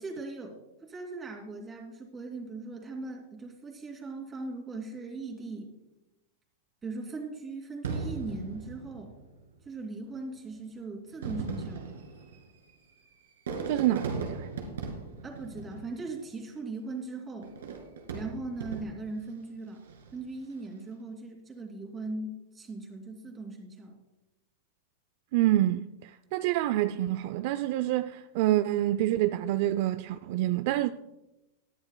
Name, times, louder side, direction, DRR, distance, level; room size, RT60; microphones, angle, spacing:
voice 1, 0.0-5.8 6.8-9.1 9.6-12.0 15.2-17.6 18.1-24.0, right 3 dB, 20° right, 2.6 m, -39 dB
Fireworks, 7.8-9.5 10.3-10.4 11.1-16.4 17.4-19.2 19.8-20.2, right 4 dB, 85° right, 2.2 m, -38 dB
voice 2, 13.7-14.5 25.3-30.9, right 14 dB, 55° right, 0.4 m, -27 dB
18.5 x 10.5 x 2.2 m
hypercardioid pair, 125°, 0 cm